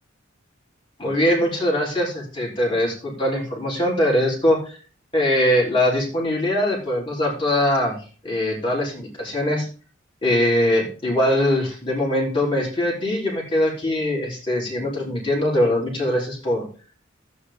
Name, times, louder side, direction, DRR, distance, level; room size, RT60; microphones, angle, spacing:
voice 1, 1.0-4.8 5.1-8.0 8.2-9.7 10.2-16.7, left 1 dB, 25° left, -3 dB, 3.6 m, -22 dB
11.0 x 8.5 x 3.6 m, 0.37 s
head